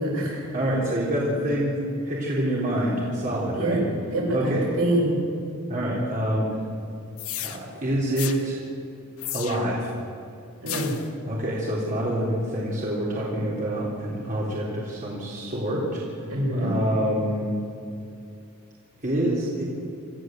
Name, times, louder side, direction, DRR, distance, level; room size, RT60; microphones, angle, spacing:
voice 1, 0.0-0.6 3.5-3.8 4.1-5.1 10.6-11.0 16.3-16.7, right 1 dB, 70° right, -3 dB, 7.2 m, -25 dB
voice 2, 0.5-1.8 2.1-3.8 4.3-4.7 5.7-6.5 7.4-8.6 9.3-9.9 11.3-16.0 16.5-17.6 19.0-19.6, right 1 dB, 40° right, -5 dB, 3.6 m, -26 dB
sound 1, 7.2-7.6 8.2-8.4 9.2-9.8 10.7-11.1, left 11 dB, 75° left, 1.5 m, -33 dB
26.5 x 14.5 x 7.8 m, 2.5 s
head